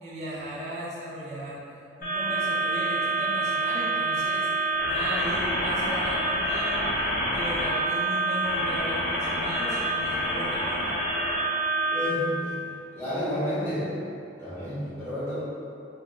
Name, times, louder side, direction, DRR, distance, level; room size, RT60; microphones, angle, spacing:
voice 1, 0.0-1.6 2.0-6.9 7.3-11.0, right 1 dB, 35° right, -7 dB, 0.6 m, -36 dB
sound 1, 2.0-12.1, right 1 dB, 50° left, 0.6 m, -27 dB
voice 2, 11.9-14.0 14.4-15.4, left 1 dB, 10° left, -13 dB, 0.9 m, -31 dB
2.4 x 2.1 x 3.6 m, 2.5 s
head